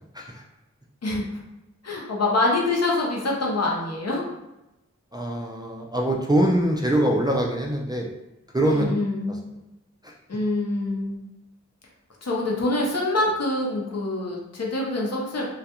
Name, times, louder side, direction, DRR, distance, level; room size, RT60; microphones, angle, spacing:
voice 1, 1.8-4.2 8.6-9.5 10.3-11.2 12.2-15.5, left 2 dB, 60° left, -2 dB, 0.7 m, -25 dB
voice 2, 5.1-8.1 8.5-8.9 9.3-9.4 10.0-10.1, right 1 dB, 15° right, -2 dB, 0.3 m, -23 dB
2.3 x 2.2 x 2.8 m, 0.93 s
wide cardioid pair, 60°, 29 cm